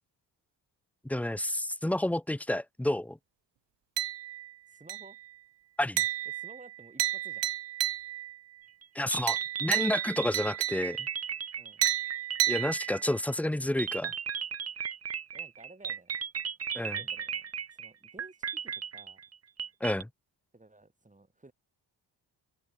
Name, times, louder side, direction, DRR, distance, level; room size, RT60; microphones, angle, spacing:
voice 1, 1.0-3.2 5.8-6.0 8.9-11.1 12.5-14.1 16.7-17.0 19.8-20.1, left 1 dB, 5° left, 0.6 m, -30 dB
sound 1, 4.0-4.5 4.9-5.3 6.0-8.4 9.3-11.2 11.8-13.2, right 13 dB, 70° right, 1.1 m, -32 dB
voice 2, 4.7-5.2 6.2-7.5 11.6-11.9 15.3-16.2 16.7-19.2 20.5-21.5, right 2 dB, 15° right, 4.6 m, -55 dB
sound 2, 8.8-8.9 9.1-13.1 13.8-20.0, right 7 dB, 35° right, 0.8 m, -36 dB
supercardioid pair, 65°, 45 cm